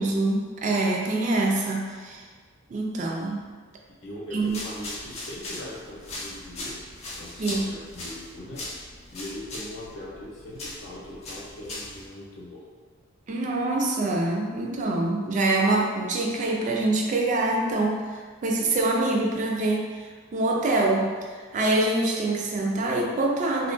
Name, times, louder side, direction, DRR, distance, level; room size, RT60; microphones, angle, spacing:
voice 1, 0.0-2.2 2.7-3.5 4.3-4.6 7.4-7.7 13.3-21.1 21.4-23.7, right 2 dB, 35° right, 0 dB, 0.3 m, -25 dB
voice 2, 4.0-6.8 7.2-12.7, left 1 dB, 70° left, -5 dB, 0.7 m, -40 dB
sound 1, 4.4-12.1, left 2 dB, 30° left, 0.4 m, -39 dB
2.3 x 2.1 x 2.5 m, 1.5 s
head